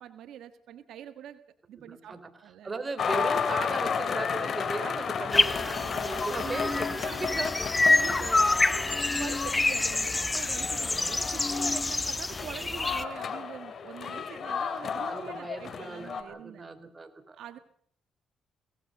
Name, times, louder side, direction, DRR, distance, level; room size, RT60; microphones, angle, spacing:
voice 1, 0.0-1.4 1.7-2.7 5.7-6.1 6.8-7.4 7.8-8.3 8.6-16.7 17.3-17.6, right 10 dB, 75° right, 9 dB, 1.6 m, -45 dB
voice 2, 1.8-2.2 2.6-7.7 8.2-8.5 9.3-9.4 15.1-17.6, right 3 dB, 25° right, 9 dB, 3.9 m, -37 dB
sound 1, 3.0-16.2, left 6 dB, 50° left, 3.0 m, -33 dB
Bowed string instrument, 4.2-9.5, left 10 dB, 70° left, 1.1 m, -46 dB
sound 2, 5.3-13.0, left 2 dB, 20° left, 1.3 m, -27 dB
24.5 x 18.5 x 6.6 m, 0.63 s
cardioid pair, 100°, 0 cm